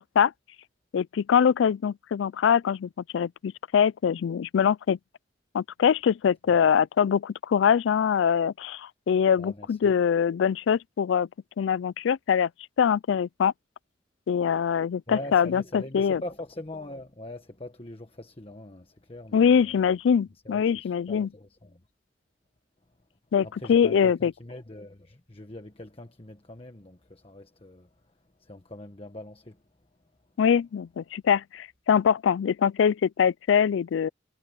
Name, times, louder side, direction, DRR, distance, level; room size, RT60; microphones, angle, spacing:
voice 1, 0.9-5.0 5.5-11.3 11.6-12.5 12.8-13.5 14.3-16.2 19.3-21.3 23.3-24.3 30.4-34.1, left 7 dB, 85° left, 0.3 m, -23 dB
voice 2, 9.4-9.9 15.1-19.8 20.4-21.8 23.4-27.9 28.4-29.6, left 1 dB, 30° left, 1.4 m, -42 dB
head